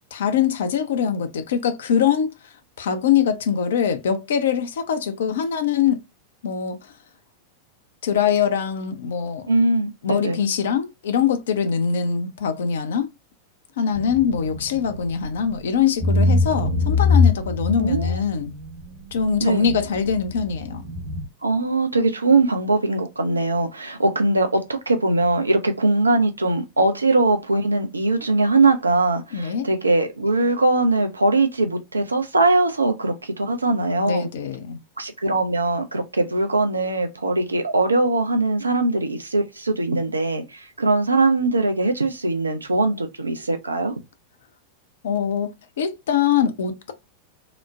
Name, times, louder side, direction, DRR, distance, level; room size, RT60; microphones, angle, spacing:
voice 1, 0.1-2.3 2.8-6.0 6.4-6.8 8.0-9.5 10.0-13.1 13.8-18.5 19.1-20.8 29.3-29.7 34.0-34.8 45.0-46.9, left 7 dB, 60° left, 0.5 m, -23 dB
voice 2, 9.5-10.4 17.8-18.2 19.4-19.7 21.4-34.3 35.0-43.9, right 2 dB, 80° right, 0.5 m, -21 dB
sound 1, 13.9-15.6 16.0-21.3, left 3 dB, 55° right, 1.1 m, -23 dB
3.0 x 2.1 x 2.4 m
figure-of-eight pair, 90°, 0 cm